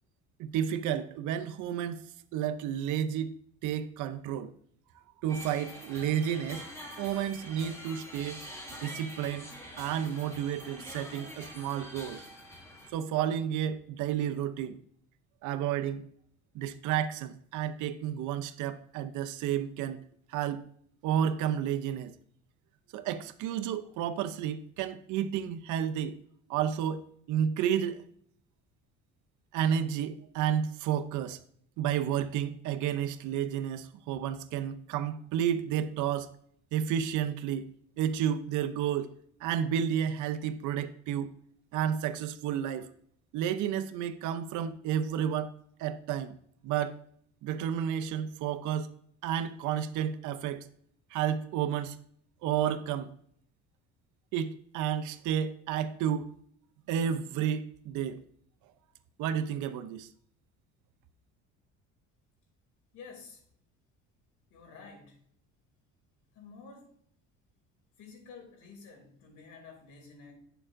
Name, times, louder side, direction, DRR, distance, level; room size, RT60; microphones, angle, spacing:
voice 1, 0.4-2.0 2.3-3.3 3.6-4.5 5.2-6.6 7.0-8.4 8.8-9.5 9.8-12.2 12.9-14.8 15.4-16.0 16.5-20.0 20.3-20.6 21.0-22.1 22.9-26.2 26.5-27.0 27.3-28.0 29.5-31.4 31.8-36.3 36.7-37.7 38.0-39.1 39.4-41.3 41.7-42.9 43.3-45.5 45.8-46.3 46.6-47.0 47.4-48.9 49.2-50.7 51.1-52.0 52.4-53.1 54.3-56.3 56.9-58.2 59.2-60.1, right 9 dB, 70° right, 0.7 m, -31 dB
sound 1, 5.3-12.9, equal, 10° left, 1.7 m, -45 dB
voice 2, 62.9-63.4 64.5-65.2 66.3-66.9 68.0-70.3, left 4 dB, 65° left, 2.9 m, -50 dB
9.9 x 6.9 x 2.5 m
cardioid pair, 130°, 31 cm